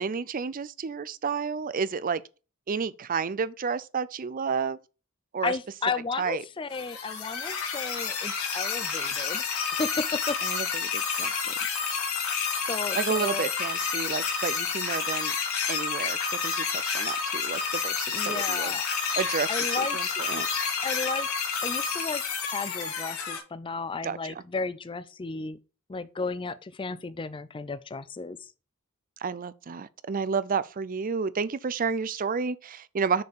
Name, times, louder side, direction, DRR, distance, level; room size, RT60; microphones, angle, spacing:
voice 1, 0.0-2.2 2.7-4.8 5.3-5.5 6.2-6.4 10.4-10.7 10.9-11.5 12.9-15.3 15.7-16.2 16.4-18.8 19.2-20.5 24.0-24.2 29.2-33.2, right 5 dB, 40° right, 0.5 m, -31 dB
voice 2, 5.4-10.4 12.7-13.5 18.1-18.8 19.5-20.0 20.8-21.3 21.6-25.6 25.9-28.5, left 4 dB, 25° left, 0.4 m, -33 dB
sound 1, 6.7-23.4, left 6 dB, 75° left, 2.4 m, -29 dB
6.7 x 4.4 x 6.6 m
head